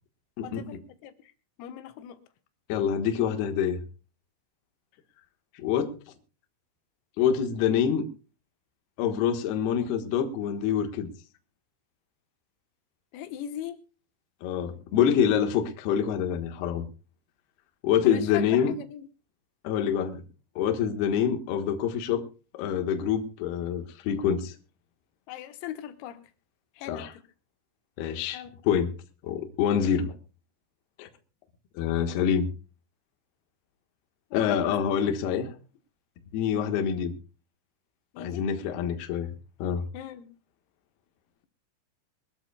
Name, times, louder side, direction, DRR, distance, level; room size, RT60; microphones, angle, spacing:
voice 1, 0.4-1.3 1.6-2.2 13.1-13.8 18.0-19.1 25.3-26.2 26.8-27.1 28.3-28.5 34.3-34.6 38.1-38.5 39.9-40.3, left 11 dB, 85° left, 4.0 m, -39 dB
voice 2, 2.7-3.8 5.5-6.0 7.2-8.0 9.0-11.1 14.4-16.8 17.8-18.7 19.6-20.2 20.6-22.3 22.5-24.5 26.9-27.1 28.0-28.9 29.2-30.2 31.0-31.1 31.7-32.5 34.3-35.5 36.3-37.1 38.2-39.3 39.6-39.9, left 8 dB, 65° left, 2.9 m, -26 dB
24.0 x 13.5 x 2.3 m
omnidirectional pair, 6.0 m